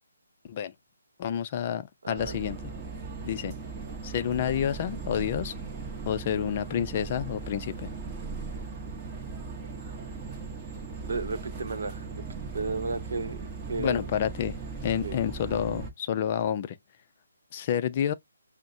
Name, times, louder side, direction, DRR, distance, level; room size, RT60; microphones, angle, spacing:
voice 1, 1.2-2.6 3.2-3.5 4.0-5.6 6.1-7.9 13.8-14.6 14.8-16.8 17.5-18.1, left 9 dB, 30° left, 0.4 m, -29 dB
voice 2, 2.0-2.4 11.1-12.1 12.5-14.1 15.0-15.2, right 3 dB, 65° right, 0.8 m, -33 dB
sound 1, 2.2-15.9, right 4 dB, 15° right, 0.8 m, -38 dB
5.8 x 2.1 x 2.6 m
hypercardioid pair, 165°, 0 cm